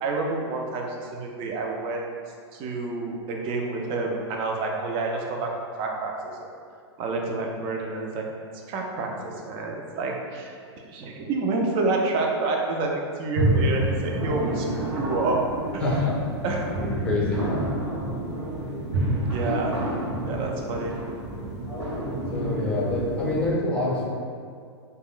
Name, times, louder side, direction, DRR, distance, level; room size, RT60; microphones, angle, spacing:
voice 1, 0.0-2.1 2.5-5.5 5.8-6.1 6.4-6.5 7.0-8.3 8.7-10.5 10.9-14.7 14.9-15.4 15.7-15.8 16.4-16.7 19.3-19.7 20.2-20.9, right 3 dB, 35° right, 0 dB, 0.4 m, -28 dB
sound 1, 13.3-23.5, right 1 dB, 90° right, 0.8 m, -28 dB
voice 2, 15.8-16.2 17.0-17.5 19.4-19.6 20.3-20.5 22.3-24.1, left 2 dB, 10° left, -6 dB, 0.7 m, -26 dB
3.4 x 2.1 x 2.4 m, 2.3 s
hypercardioid pair, 115°, 14 cm